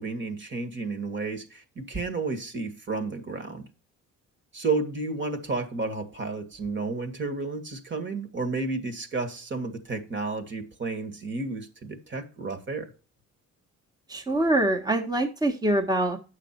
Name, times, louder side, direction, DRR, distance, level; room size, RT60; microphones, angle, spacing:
voice 1, 0.0-3.7 4.5-12.9, right 3 dB, 40° right, 2.0 m, -32 dB
voice 2, 14.1-16.2, right 1 dB, 15° right, 1.5 m, -24 dB
8.9 x 6.5 x 4.5 m
cardioid pair, 90°, 30 cm